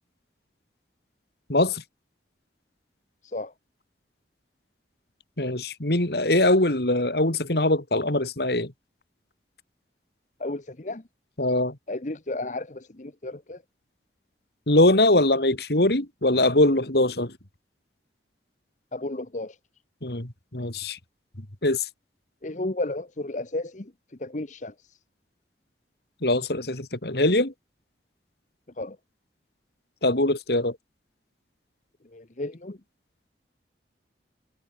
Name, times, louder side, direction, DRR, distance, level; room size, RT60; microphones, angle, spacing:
voice 1, 1.5-1.8 5.4-8.7 11.4-11.8 14.7-17.3 20.0-21.0 21.6-21.9 26.2-27.5 30.0-30.8, left 1 dB, 60° left, 3.1 m, -22 dB
voice 2, 10.4-11.0 11.9-13.6 18.9-19.6 22.4-23.9 24.2-25.0 28.8-29.0 32.1-32.8, left 2 dB, 45° left, 1.1 m, -33 dB
head